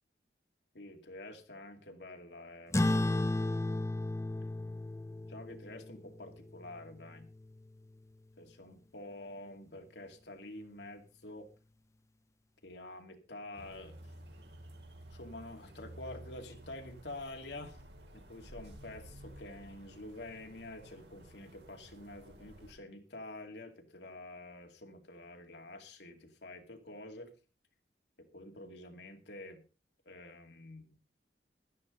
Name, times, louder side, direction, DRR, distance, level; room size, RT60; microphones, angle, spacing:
voice 1, 0.7-3.3 5.3-7.3 8.4-11.5 12.6-14.0 15.1-17.8 18.1-27.3 28.2-29.6 30.1-31.0, left 2 dB, 75° left, 4 dB, 2.5 m, -48 dB
sound 1, 2.7-7.6, left 2 dB, 15° left, 0.7 m, -34 dB
sound 2, 13.5-22.7, right 1 dB, 75° right, 4.2 m, -53 dB
16.0 x 12.5 x 3.9 m, 0.33 s
head